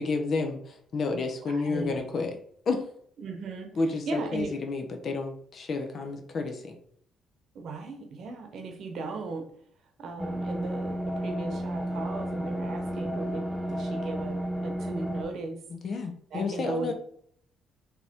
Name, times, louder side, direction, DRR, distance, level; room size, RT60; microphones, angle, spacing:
voice 1, 0.0-2.3 2.7-2.8 3.8-6.7 15.7-16.9, left 3 dB, 55° left, 4 dB, 0.8 m, -30 dB
voice 2, 1.4-2.0 3.2-3.7 4.1-4.5 7.5-9.5 10.0-15.6 16.3-16.9, right 3 dB, 65° right, 5 dB, 0.9 m, -37 dB
sound 1, 10.2-15.2, equal, 5° left, 0.6 m, -32 dB
3.8 x 3.0 x 3.5 m, 0.63 s
supercardioid pair, 70°, 0 cm